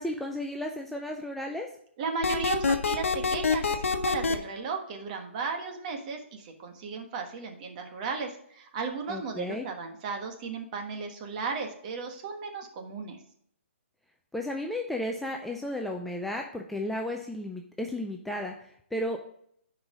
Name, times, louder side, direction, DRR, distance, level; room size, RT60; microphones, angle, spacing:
voice 1, 0.0-1.7 9.1-9.7 14.3-19.2, left 1 dB, ahead, 1 dB, 0.4 m, -34 dB
voice 2, 2.0-13.2, right 5 dB, 35° right, 4 dB, 1.4 m, -35 dB
sound 1, 2.2-4.4, left 5 dB, 90° left, 0.9 m, -25 dB
10.0 x 4.9 x 3.7 m, 0.67 s
hypercardioid pair, 155°, 7 cm